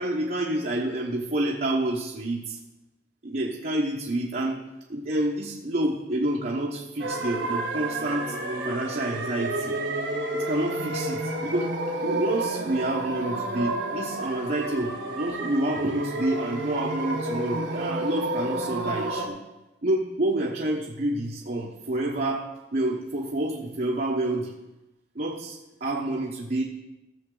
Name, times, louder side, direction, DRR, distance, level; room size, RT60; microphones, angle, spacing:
voice 1, 0.0-2.6 3.2-4.6 4.9-8.3 8.6-9.8 10.3-11.7 12.0-19.4 19.8-22.5 22.7-24.5 25.1-26.6, right 1 dB, 50° right, -2 dB, 1.1 m, -28 dB
sound 1, 7.0-19.3, right 1 dB, 85° right, 1.6 m, -30 dB
15.0 x 6.9 x 3.9 m, 1.0 s
head